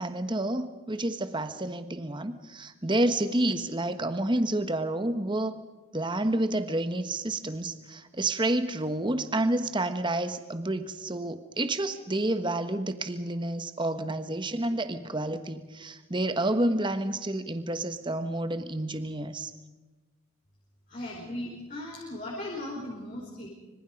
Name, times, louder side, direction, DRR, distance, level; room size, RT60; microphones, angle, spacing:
voice 1, 0.0-5.5 5.9-19.5, right 1 dB, 20° right, 10 dB, 1.2 m, -29 dB
voice 2, 20.9-23.5, left 1 dB, 40° left, -4 dB, 4.8 m, -37 dB
25.5 x 25.5 x 5.3 m, 1.2 s
head